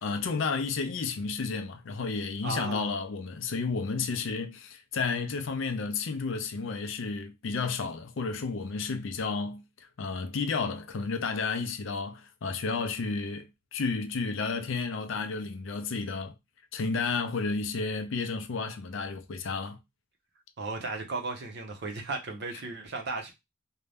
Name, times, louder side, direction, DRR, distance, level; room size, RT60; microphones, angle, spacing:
voice 1, 0.0-9.6 10.0-16.3 16.7-19.8, left 4 dB, 60° left, 0.4 m, -32 dB
voice 2, 2.4-2.9 20.6-23.3, right 3 dB, 50° right, 0.6 m, -35 dB
2.6 x 2.1 x 3.3 m
head